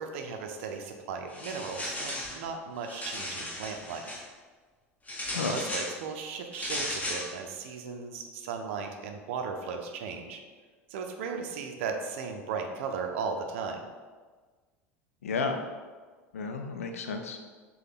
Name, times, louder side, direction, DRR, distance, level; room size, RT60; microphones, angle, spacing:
voice 1, 0.0-4.1 5.4-10.4 10.9-13.8, right 5 dB, 55° right, 4 dB, 0.5 m, -36 dB
sound 1, 1.3-2.4 2.8-4.2 5.1-5.9 6.5-7.3, left 1 dB, 20° left, 1.4 m, -35 dB
voice 2, 15.2-15.7 16.3-17.4, left 4 dB, 70° left, 5 dB, 0.4 m, -32 dB
6.5 x 2.3 x 3.5 m, 1.4 s
figure-of-eight pair, 75°, 8 cm